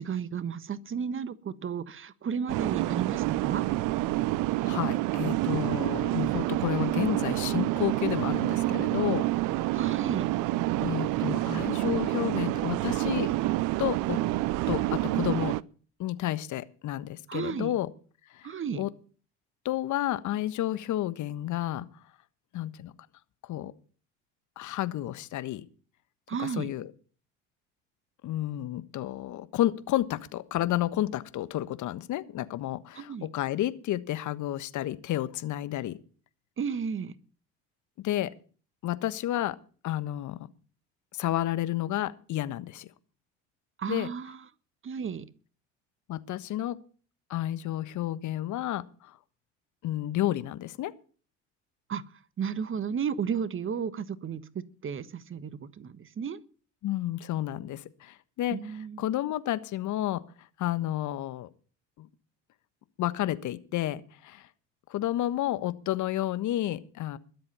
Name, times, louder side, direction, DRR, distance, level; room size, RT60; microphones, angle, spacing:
voice 1, 0.0-3.7 9.7-10.3 17.3-17.7 18.4-18.8 26.3-26.7 32.9-33.3 36.6-37.1 43.8-44.4 44.8-45.3 51.9-52.0 52.4-56.4 58.5-59.1, right 7 dB, 35° right, 15 dB, 1.4 m, -33 dB
sound 1, 2.5-15.6, right 17 dB, 60° right, 0.8 m, -28 dB
voice 2, 4.6-9.2 10.8-13.3 13.8-14.2 14.7-15.6 16.0-17.9 18.7-18.9 19.6-21.8 22.5-22.9 23.5-23.7 24.6-25.6 26.4-26.9 28.2-36.0 38.0-38.3 38.8-39.5 39.8-40.5 41.1-42.9 43.9-44.1 46.1-46.8 47.3-48.8 49.8-50.9 56.8-58.6 59.0-60.2 60.6-61.5 62.0-62.1 63.0-64.4 64.9-67.2, left 13 dB, 55° left, 14 dB, 1.4 m, -31 dB
21.5 x 7.8 x 5.7 m, 0.40 s
hypercardioid pair, 70°, 36 cm